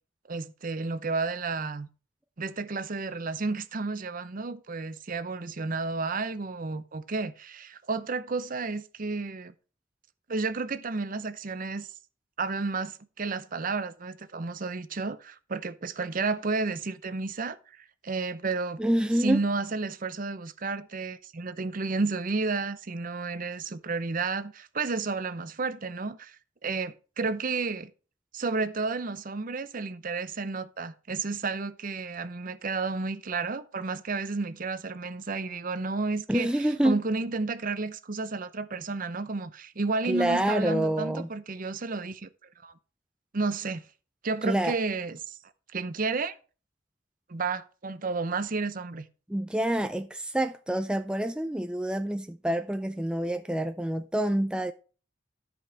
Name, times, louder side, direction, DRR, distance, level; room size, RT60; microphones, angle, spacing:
voice 1, 0.3-1.9 2.4-9.5 10.3-11.9 12.4-18.8 19.2-27.9 28.3-42.3 42.6-42.7 43.3-43.8 44.2-45.4 45.7-46.3 47.3-49.1, right 3 dB, 45° right, 0.7 m, -32 dB
voice 2, 18.8-19.4 36.3-37.0 40.0-41.3 44.4-44.7 49.3-54.7, right 1 dB, 5° right, 0.4 m, -27 dB
13.0 x 5.3 x 4.8 m
head